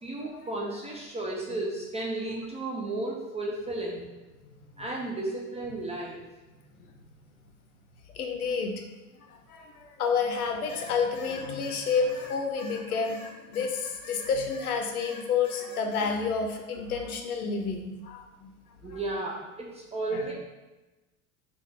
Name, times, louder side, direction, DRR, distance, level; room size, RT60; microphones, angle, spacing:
voice 1, 0.0-4.0 4.8-6.2 18.8-20.3, right 2 dB, 15° right, -3 dB, 0.5 m, -33 dB
voice 2, 8.1-8.8 9.3-18.5 18.9-19.0 20.1-20.2, left 5 dB, 90° left, 3 dB, 0.6 m, -30 dB
sound 1, 10.7-14.7 15.0-16.2, left 3 dB, 40° left, 0.8 m, -46 dB
3.6 x 2.4 x 3.4 m, 1.1 s
hypercardioid pair, 80°, 42 cm